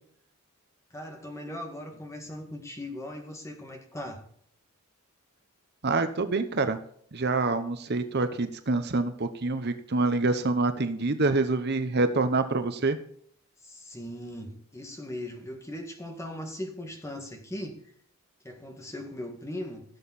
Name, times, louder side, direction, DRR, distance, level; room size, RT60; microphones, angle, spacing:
voice 1, 0.9-4.3 13.6-17.8 18.4-19.8, left 1 dB, 15° left, 1.9 m, -39 dB
voice 2, 5.8-6.8 7.1-13.0, right 3 dB, 50° right, 0.9 m, -26 dB
16.0 x 7.3 x 4.2 m
head